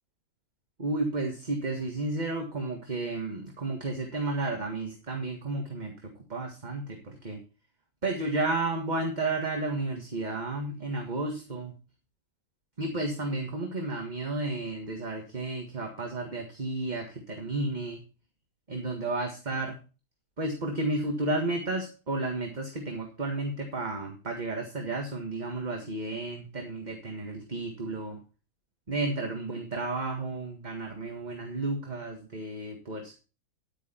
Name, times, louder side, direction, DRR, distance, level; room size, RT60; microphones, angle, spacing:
voice 1, 0.8-7.4 8.0-11.7 12.8-18.0 18.7-19.8 20.4-28.2 28.9-33.1, right 2 dB, 30° right, 2 dB, 1.7 m, -32 dB
10.5 x 9.3 x 4.3 m, 0.33 s
omnidirectional pair, 1.7 m